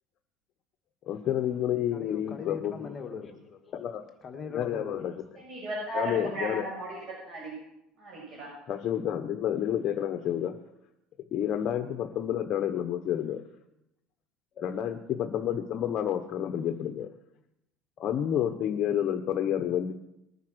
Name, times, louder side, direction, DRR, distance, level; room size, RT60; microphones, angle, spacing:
voice 1, 1.1-2.7 3.7-4.1 4.5-5.2 5.9-6.6 8.7-10.6 11.3-13.4 14.6-17.1 18.0-19.9, left 10 dB, 45° left, 1.1 m, -29 dB
voice 2, 1.9-3.7 4.2-5.1, left 6 dB, 30° left, 1.7 m, -40 dB
voice 3, 5.4-7.5 8.0-8.5, right 1 dB, 45° right, 7.0 m, -35 dB
20.5 x 9.5 x 6.3 m
cardioid pair, 135°, 0 cm